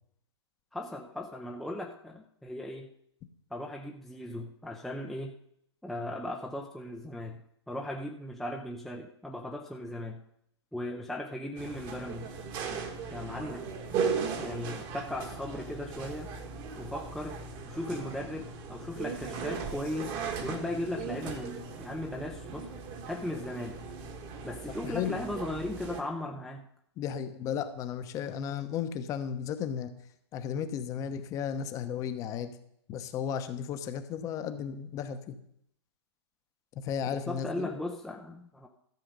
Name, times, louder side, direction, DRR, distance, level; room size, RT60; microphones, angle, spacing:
voice 1, 0.7-2.9 3.5-5.4 5.8-10.2 10.7-12.3 13.1-13.7 14.4-16.3 16.8-20.2 20.4-22.7 23.1-23.8 24.4-26.7 37.3-38.7, left 1 dB, ahead, 0 dB, 0.6 m, -37 dB
sound 1, 11.6-26.0, right 5 dB, 30° right, 1.4 m, -38 dB
voice 2, 24.8-25.2 27.0-29.9 30.3-32.5 32.9-35.4 36.8-37.7, left 8 dB, 20° left, 9 dB, 0.9 m, -34 dB
13.5 x 6.8 x 5.3 m, 0.72 s
hypercardioid pair, 140°, 15 cm